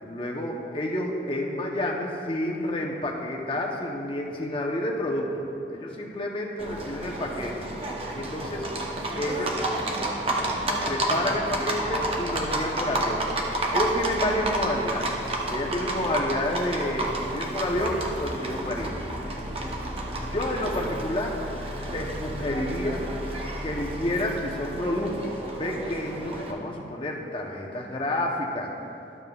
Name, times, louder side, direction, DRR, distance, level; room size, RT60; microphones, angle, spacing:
voice 1, 0.0-8.7 9.2-9.6 10.9-13.3 13.7-15.1 15.5-19.2 20.2-21.4 21.9-23.0 23.6-28.7, left 1 dB, 30° left, 0 dB, 0.7 m, -29 dB
Livestock farm animals working animals, 6.6-26.5, right 1 dB, 30° right, 0.8 m, -31 dB
12.0 x 7.0 x 2.3 m, 2.8 s
head